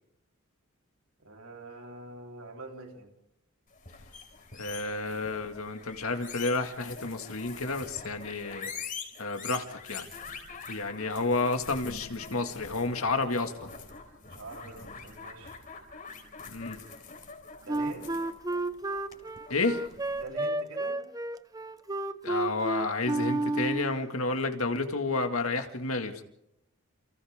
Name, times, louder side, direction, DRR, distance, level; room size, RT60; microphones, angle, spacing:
voice 1, 1.2-3.1 14.2-15.6 17.6-18.1 20.1-21.0, right 2 dB, 85° right, 2 dB, 3.8 m, -45 dB
sound 1, 3.7-20.2, left 5 dB, 40° left, 4.2 m, -45 dB
voice 2, 4.5-8.7 9.2-10.1 10.7-13.7 16.5-16.8 19.5-19.8 22.2-26.2, left 3 dB, 80° left, 6 dB, 2.1 m, -31 dB
Wind instrument woodwind instrument, 17.7-24.0, right 2 dB, 15° right, 0.8 m, -31 dB
29.0 x 29.0 x 3.7 m, 0.83 s
head